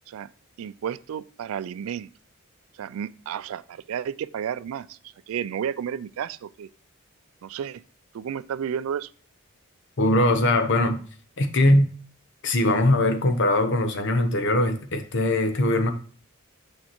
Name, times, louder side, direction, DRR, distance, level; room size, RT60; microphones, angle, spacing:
voice 1, 0.6-2.1 2.7-6.7 7.4-7.8 8.1-9.1, right 8 dB, 70° right, 0.3 m, -32 dB
voice 2, 10.0-11.0 11.4-11.9 12.4-15.9, left 1 dB, 55° left, 0.8 m, -21 dB
6.5 x 5.8 x 2.9 m
head